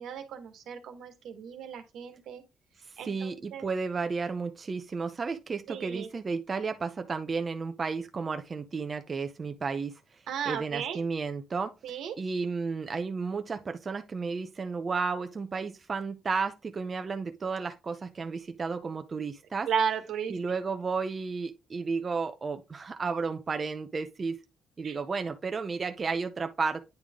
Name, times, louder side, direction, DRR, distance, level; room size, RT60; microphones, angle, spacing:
voice 1, 0.0-2.4 3.0-3.6 5.7-6.1 10.3-11.0 11.8-12.2 19.7-20.4 24.8-25.0, right 7 dB, 80° right, 1.3 m, -34 dB
voice 2, 2.9-10.0 10.5-11.7 12.2-19.7 20.3-24.4 24.8-26.9, right 4 dB, 30° right, 0.5 m, -33 dB
9.1 x 3.5 x 3.6 m
cardioid pair, 130°, 0 cm